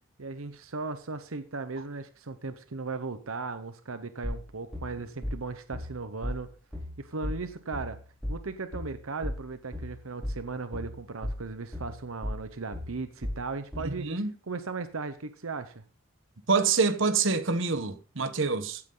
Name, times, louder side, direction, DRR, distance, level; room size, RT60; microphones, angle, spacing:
voice 1, 0.2-6.5 7.0-8.0 8.3-14.1 14.4-15.8, right 4 dB, 85° right, 0.9 m, -37 dB
sound 1, 4.2-14.0, left 1 dB, 5° right, 6.0 m, -36 dB
voice 2, 13.8-14.3 16.5-18.8, right 4 dB, 65° right, 1.1 m, -26 dB
15.5 x 9.5 x 3.9 m
head